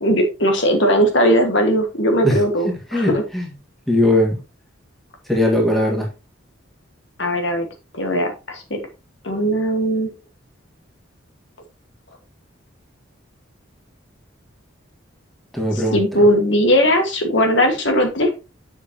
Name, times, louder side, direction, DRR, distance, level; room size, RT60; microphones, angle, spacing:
voice 1, 0.0-3.2 7.2-7.7 7.9-8.8 9.2-10.1 15.7-18.3, equal, 65° left, 1.7 m, -18 dB
voice 2, 2.9-3.4 3.9-4.4 5.3-6.1 15.5-16.0, left 1 dB, ahead, 1.7 m, -18 dB
7.2 x 6.7 x 2.9 m
head